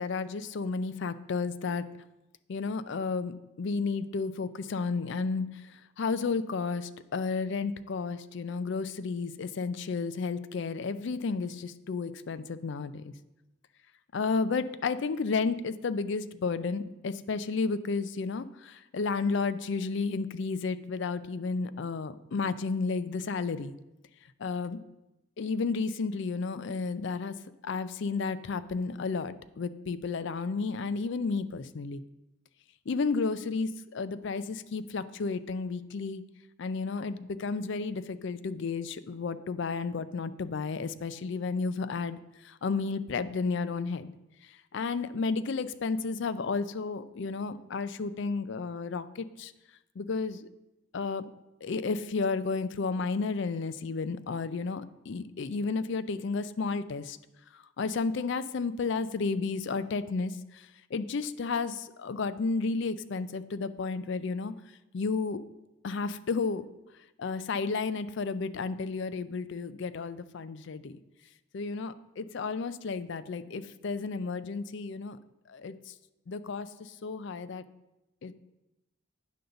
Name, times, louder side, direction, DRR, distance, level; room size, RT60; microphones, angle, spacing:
voice 1, 0.0-1.9 2.5-13.1 14.1-23.8 24.4-24.8 25.4-27.4 27.6-32.0 32.9-36.2 36.6-44.1 44.4-49.5 50.0-50.5 50.9-51.3 51.6-57.2 57.5-64.5 64.9-65.4 65.8-66.6 67.2-71.0 71.5-75.2 75.5-75.9 76.3-77.6 78.2-78.4, left 4 dB, 55° left, 13 dB, 0.4 m, -32 dB
9.3 x 3.9 x 6.8 m, 0.95 s
head